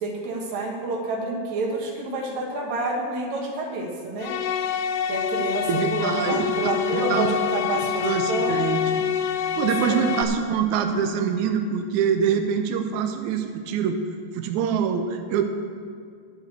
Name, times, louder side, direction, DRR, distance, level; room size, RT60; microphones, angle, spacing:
voice 1, 0.0-4.3 5.1-8.6 9.6-10.0, right 2 dB, 60° right, 0 dB, 2.5 m, -29 dB
sound 1, 4.2-10.2, left 8 dB, 80° left, 2.4 m, -26 dB
voice 2, 5.7-6.5 6.9-7.3 7.7-9.1 9.4-14.0 14.4-15.4, right 7 dB, 85° right, 5 dB, 1.7 m, -25 dB
11.5 x 6.6 x 8.1 m, 2.2 s
omnidirectional pair, 4.2 m